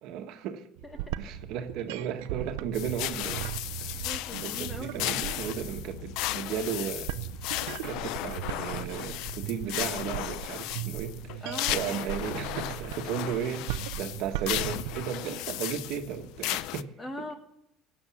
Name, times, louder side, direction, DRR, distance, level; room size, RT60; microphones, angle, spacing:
voice 1, 0.0-0.7 1.2-3.5 3.8-4.1 4.4-7.1 7.8-11.4 11.7-16.9 17.2-17.3, right 8 dB, 65° right, 6 dB, 1.4 m, -35 dB
sound 1, 0.8-15.1, right 14 dB, 90° right, 0.6 m, -38 dB
sound 2, 2.7-16.8, left 15 dB, 70° left, 0.5 m, -35 dB
voice 2, 3.9-5.6 11.4-11.8 17.0-17.3, left 2 dB, 15° left, 7 dB, 1.7 m, -41 dB
18.0 x 8.2 x 7.2 m, 0.79 s
cardioid pair, 125°, 0 cm